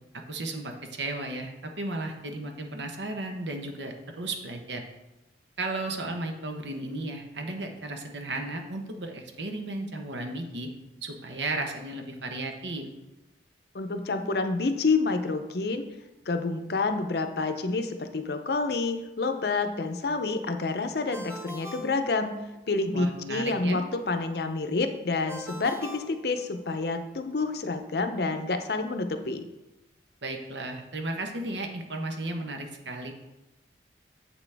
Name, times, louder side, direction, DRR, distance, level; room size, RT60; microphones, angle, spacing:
voice 1, 0.3-4.8 5.6-10.7 11.0-12.9 22.9-23.8 30.2-33.1, right 2 dB, 85° right, 3 dB, 1.0 m, -34 dB
voice 2, 13.7-15.8 16.3-22.3 22.7-29.5, left 3 dB, 60° left, 7 dB, 0.6 m, -28 dB
Ringtone, 21.1-22.8 25.3-27.0, left 1 dB, 15° right, 0.6 m, -42 dB
7.9 x 6.0 x 3.4 m, 1.0 s
head